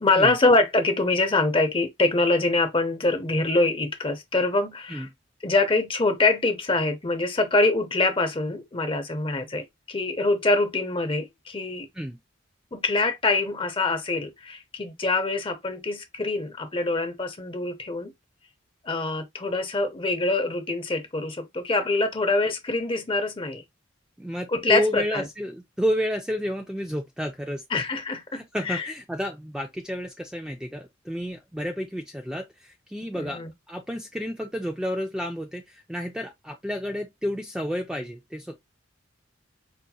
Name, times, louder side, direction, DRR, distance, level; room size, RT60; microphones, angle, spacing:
voice 1, 0.0-5.1 5.4-11.9 12.7-18.1 18.8-23.6 24.5-25.3 27.7-28.9 33.1-33.5, left 2 dB, 25° left, 0.7 m, -24 dB
voice 2, 24.2-27.8 28.3-33.4 33.7-38.6, equal, 5° right, 0.3 m, -30 dB
5.0 x 2.8 x 2.3 m
head